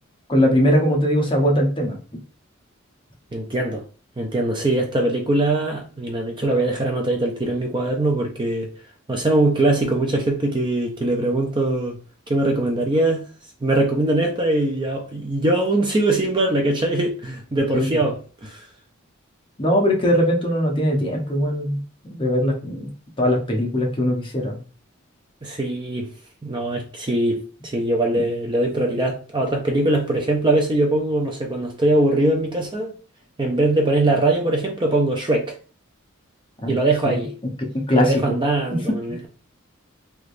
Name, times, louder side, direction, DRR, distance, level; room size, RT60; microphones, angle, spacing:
voice 1, 0.3-2.0 17.7-18.0 19.6-21.8 22.1-22.9 23.2-24.6 36.6-36.8 37.0-37.2 37.7-38.4 38.9-39.2, equal, 25° left, 0.8 m, -20 dB
voice 2, 3.3-3.8 4.2-8.7 9.1-12.0 12.3-13.2 13.6-18.6 25.4-26.1 26.4-33.0 33.4-35.6 36.7-37.3 37.9-39.3, right 2 dB, 25° right, 0.5 m, -21 dB
3.3 x 2.9 x 2.5 m
head